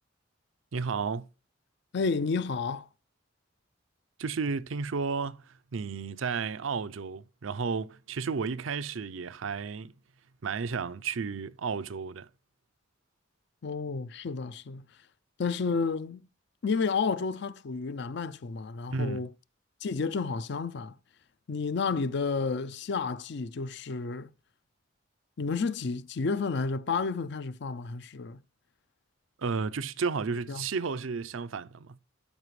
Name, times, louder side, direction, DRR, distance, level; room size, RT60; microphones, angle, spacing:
voice 1, 0.7-1.3 4.2-9.9 10.4-12.3 18.9-19.3 29.4-32.0, right 5 dB, 80° right, 0.5 m, -33 dB
voice 2, 1.9-2.9 13.6-14.9 15.4-16.2 16.6-19.3 19.8-21.0 21.5-24.3 25.4-28.4 30.5-30.7, left 4 dB, 60° left, 0.5 m, -31 dB
12.5 x 5.1 x 3.2 m
head